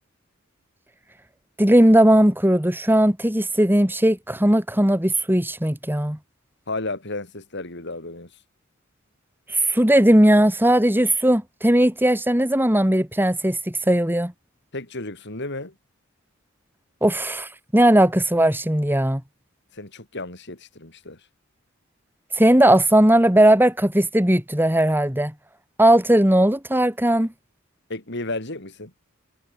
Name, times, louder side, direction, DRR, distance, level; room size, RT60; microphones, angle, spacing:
voice 1, 1.6-6.2 9.5-14.3 17.0-19.2 22.4-25.3 25.8-27.3, right 1 dB, 10° right, 3.1 m, -18 dB
voice 2, 6.7-8.3 14.7-15.7 19.7-21.2 27.9-28.9, left 2 dB, 60° left, 5.0 m, -33 dB
head